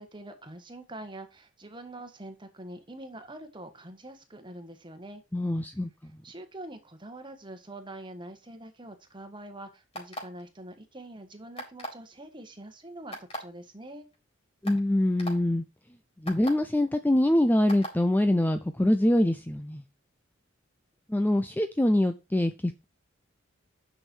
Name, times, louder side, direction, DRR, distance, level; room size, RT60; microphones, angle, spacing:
voice 1, 0.0-5.2 6.2-14.1, right 1 dB, 25° right, 1.6 m, -44 dB
voice 2, 5.3-5.9 14.6-15.6 16.2-19.8 21.1-22.8, left 1 dB, 10° left, 0.5 m, -24 dB
sound 1, 9.9-10.4 11.6-12.0 13.1-13.4 14.1-14.2 14.6-14.8 15.2-15.3 16.3-16.5 17.7-17.9, right 1 dB, 30° left, 4.0 m, -36 dB
9.9 x 6.3 x 4.5 m
head